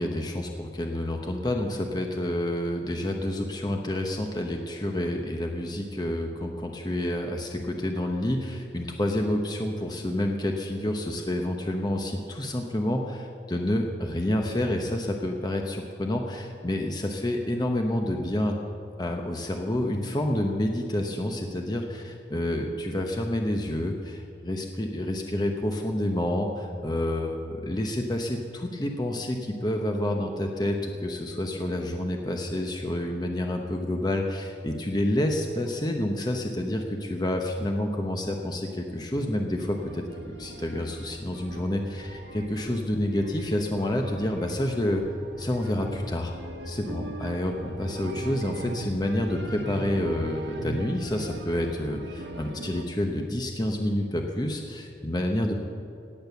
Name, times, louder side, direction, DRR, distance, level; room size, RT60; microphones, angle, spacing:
voice 1, 0.0-18.5 19.0-45.0 45.4-46.3 46.7-55.5, left 1 dB, 20° left, 2 dB, 0.9 m, -29 dB
sound 1, 39.6-52.8, right 1 dB, 70° right, 1.3 m, -40 dB
17.5 x 8.9 x 6.8 m, 2.6 s
head